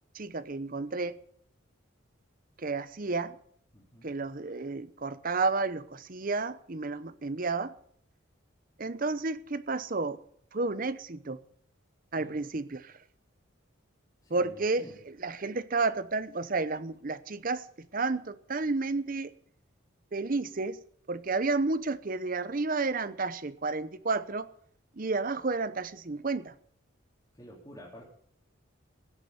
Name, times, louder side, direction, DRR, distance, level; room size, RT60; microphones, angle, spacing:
voice 1, 0.1-1.2 2.6-3.4 4.0-7.7 8.8-10.2 10.5-11.4 12.1-12.9 14.3-14.8 15.2-17.7 17.9-19.3 20.1-20.8 21.1-24.5 25.0-26.5, right 3 dB, 40° right, 0.8 m, -31 dB
voice 2, 3.7-4.1 12.2-12.4 14.2-15.0 27.3-28.1, equal, 20° left, 3.4 m, -49 dB
16.5 x 7.7 x 9.5 m
head